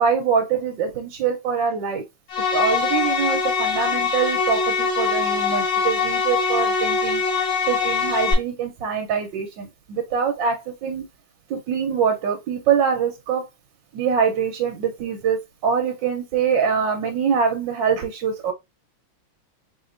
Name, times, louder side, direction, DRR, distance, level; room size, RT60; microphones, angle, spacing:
voice 1, 0.0-2.0 2.5-7.2 7.6-11.0 11.5-13.5 13.9-18.5, right 6 dB, 70° right, 1.3 m, -24 dB
sound 1, 2.3-8.3, left 5 dB, 85° left, 2.0 m, -22 dB
4.6 x 2.9 x 2.5 m
omnidirectional pair, 2.2 m